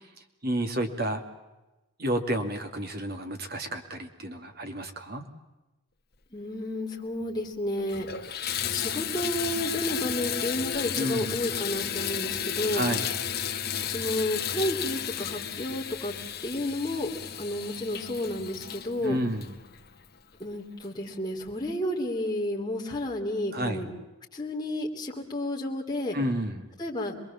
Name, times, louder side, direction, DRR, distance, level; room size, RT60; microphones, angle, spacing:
voice 1, 0.4-1.2 2.0-5.2 10.9-11.3 12.7-13.1 19.0-19.4 23.5-23.8 26.1-26.6, right 1 dB, 45° right, 6 dB, 2.6 m, -30 dB
voice 2, 6.3-8.1 8.7-12.9 13.9-16.1 16.4-17.1 17.4-19.2 20.4-23.9 24.3-26.2 26.8-27.1, left 1 dB, 20° left, -2 dB, 3.3 m, -31 dB
Water tap faucet / Bathtub (filling or washing), 7.2-7.3 7.8-20.2 20.8-20.9 21.4-21.5, left 8 dB, 45° left, 1.8 m, -33 dB
27.5 x 21.5 x 7.3 m, 1.1 s
head